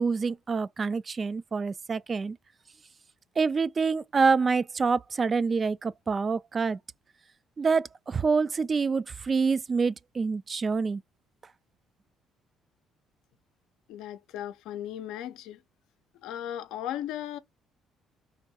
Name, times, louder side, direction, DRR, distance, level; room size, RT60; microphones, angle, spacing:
voice 1, 0.0-2.4 3.4-6.8 7.6-11.0, right 4 dB, 35° right, 0.3 m, -26 dB
voice 2, 13.9-15.6 16.2-17.4, left 11 dB, 85° left, 0.5 m, -36 dB
3.4 x 2.3 x 4.2 m
cardioid pair, 85°, 0 cm